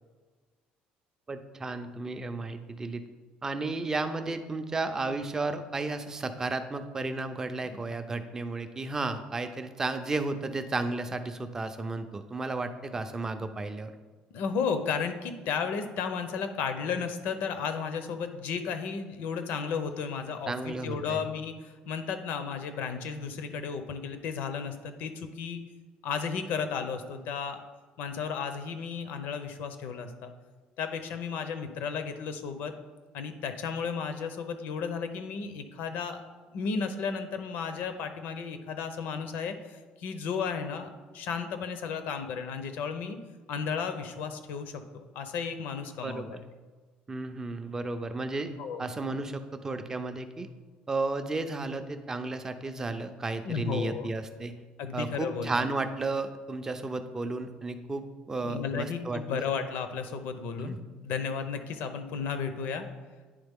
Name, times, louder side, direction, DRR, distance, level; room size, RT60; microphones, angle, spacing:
voice 1, 1.3-3.0 3.4-13.9 20.5-21.2 46.0-46.4 47.1-48.5 48.8-50.5 50.9-54.6 54.9-59.5 60.6-60.8, right 3 dB, 15° right, 8 dB, 0.4 m, -33 dB
voice 2, 14.3-25.6 26.0-27.6 28.0-30.3 30.8-32.7 33.1-36.2 36.5-43.2 43.5-46.4 48.6-48.9 53.4-54.1 54.8-55.6 58.4-60.8 61.0-62.8, left 6 dB, 70° left, 8 dB, 0.6 m, -34 dB
9.6 x 3.6 x 3.6 m, 1.4 s
cardioid pair, 150°, 3 cm